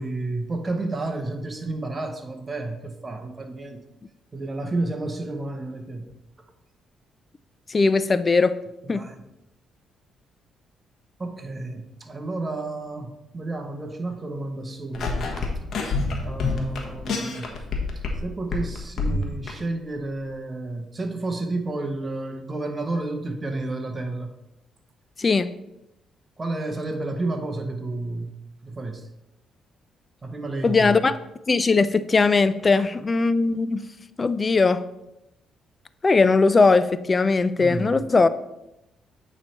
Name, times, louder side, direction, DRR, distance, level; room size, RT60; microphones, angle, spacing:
voice 1, 0.0-3.8 4.3-6.2 8.8-9.2 11.2-15.5 16.2-17.5 18.2-24.3 26.4-28.4 28.6-29.0 30.2-31.0 32.8-32.9 37.6-38.0, right 2 dB, 25° right, 4 dB, 0.9 m, -31 dB
voice 2, 7.7-8.6 8.9-9.0 25.2-25.5 30.6-31.2 31.5-33.8 34.2-34.8 36.0-38.3, left 4 dB, 30° left, 14 dB, 0.3 m, -19 dB
sound 1, 14.9-18.2 18.5-19.5, left 3 dB, 60° left, 1.1 m, -27 dB
8.7 x 3.3 x 4.3 m, 0.89 s
cardioid pair, 90°, 0 cm